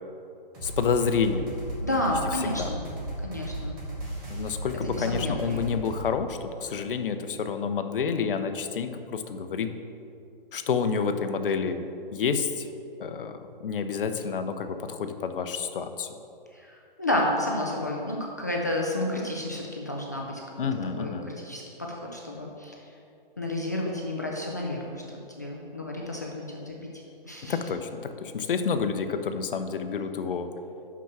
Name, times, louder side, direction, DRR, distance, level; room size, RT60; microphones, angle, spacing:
sound 1, 0.5-6.0, right 1 dB, 25° right, 1.8 m, -35 dB
voice 1, 0.6-1.6 2.4-2.7 4.3-9.8 10.5-12.7 13.0-16.1 20.6-21.3 27.4-30.5, left 6 dB, 65° left, 8 dB, 0.7 m, -29 dB
voice 2, 1.8-2.9 3.2-3.8 4.8-5.7 16.5-20.4 21.0-22.8 23.4-25.0 25.4-26.8 27.2-27.6, left 1 dB, 20° left, -2 dB, 0.3 m, -31 dB
6.0 x 5.9 x 5.9 m, 2.6 s
hypercardioid pair, 160°, 29 cm